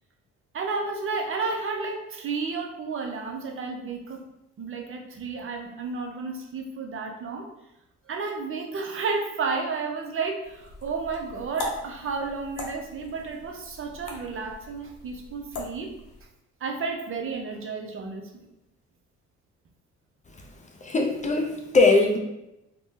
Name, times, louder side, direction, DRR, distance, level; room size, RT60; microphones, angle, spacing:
voice 1, 0.5-4.2 4.6-7.5 8.1-15.9 16.6-18.5, right 4 dB, 45° right, 2 dB, 0.5 m, -32 dB
sound 1, 10.4-16.3, left 2 dB, 80° left, 0.7 m, -40 dB
voice 2, 20.8-22.2, left 3 dB, 25° left, 1 dB, 0.4 m, -21 dB
2.5 x 2.1 x 3.5 m, 0.89 s
cardioid pair, 90°, 30 cm